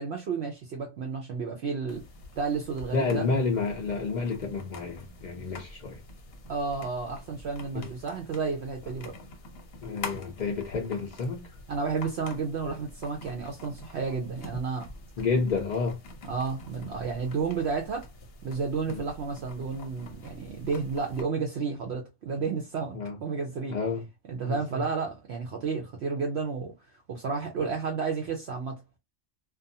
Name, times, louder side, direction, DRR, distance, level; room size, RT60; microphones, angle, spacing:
voice 1, 0.0-2.0 2.4-3.3 6.5-9.2 11.7-14.9 16.3-18.1 18.4-23.8 24.3-26.7 27.1-28.8, right 5 dB, 65° right, 0.8 m, -31 dB
sound 1, 1.9-21.2, left 2 dB, 55° left, 0.8 m, -46 dB
voice 2, 2.9-6.0 7.7-7.9 9.8-11.5 15.2-16.0 18.9-19.0 22.9-23.2 23.7-24.0 24.4-24.8, left 4 dB, 80° left, 0.4 m, -30 dB
2.5 x 2.3 x 2.6 m
omnidirectional pair, 1.4 m